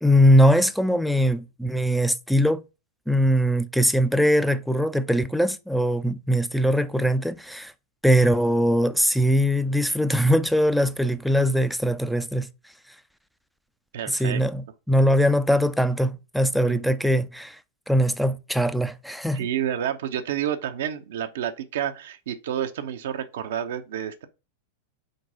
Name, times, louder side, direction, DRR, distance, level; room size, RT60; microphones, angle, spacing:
voice 1, 0.0-2.6 3.1-7.7 8.0-12.5 14.1-17.6 17.9-19.5, equal, ahead, 0.4 m, -21 dB
voice 2, 13.9-14.4 16.7-16.9 19.3-24.3, right 10 dB, 60° right, 0.7 m, -29 dB
4.6 x 4.0 x 5.4 m
figure-of-eight pair, 90°, 0 cm